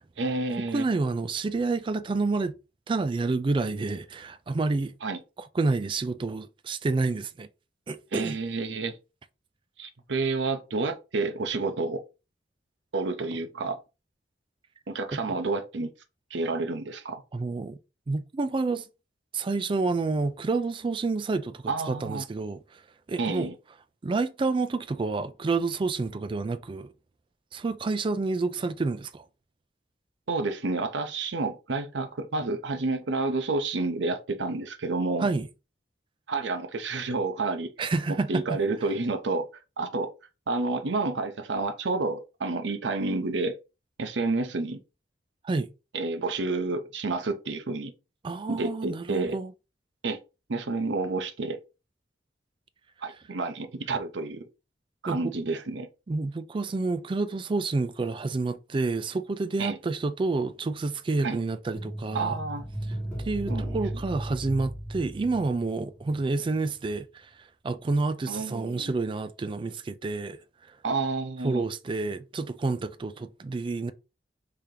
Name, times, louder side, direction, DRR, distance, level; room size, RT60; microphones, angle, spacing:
voice 1, 0.2-0.9 5.0-5.2 8.1-9.0 9.8-12.0 12.9-13.8 14.9-15.9 16.3-17.2 21.7-22.2 23.2-23.5 30.3-35.3 36.3-37.7 38.3-39.5 39.8-40.1 40.5-43.6 44.0-44.8 45.9-47.9 48.5-49.4 50.0-50.2 50.5-51.6 53.0-54.5 55.0-55.9 59.6-59.8 61.2-61.4 62.1-62.7 63.5-63.8 68.3-68.9 70.8-71.6, right 3 dB, 85° right, 0.7 m, -29 dB
voice 2, 0.7-2.5 2.9-4.9 5.5-7.5 7.9-8.4 15.1-15.2 17.3-17.8 18.1-18.9 19.3-22.8 23.1-23.5 24.0-26.9 27.5-29.2 35.2-35.5 37.8-38.6 45.4-45.7 48.2-49.5 55.1-55.3 56.1-62.4 63.2-70.4 71.4-73.9, right 3 dB, 30° right, 0.3 m, -29 dB
sound 1, 61.7-66.2 66.5-66.6, right 1 dB, 10° left, 1.3 m, -35 dB
3.4 x 2.8 x 3.6 m
head